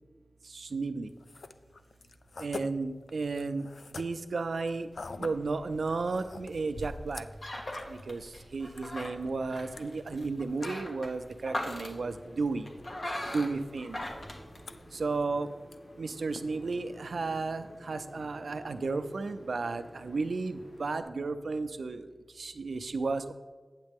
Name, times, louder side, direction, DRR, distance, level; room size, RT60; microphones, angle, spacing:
voice 1, 0.4-1.1 2.4-4.9 5.2-7.3 7.9-12.7 13.2-14.0 14.9-15.5 16.0-23.3, right 3 dB, 90° right, 10 dB, 0.4 m, -33 dB
sound 1, 1.1-17.7, left 3 dB, 80° left, 0.4 m, -50 dB
sound 2, 4.9-15.2, left 1 dB, 55° left, 1.2 m, -41 dB
sound 3, 11.8-21.0, equal, 25° left, 1.3 m, -52 dB
8.8 x 7.4 x 3.5 m, 1.4 s
wide cardioid pair, 85°, 0 cm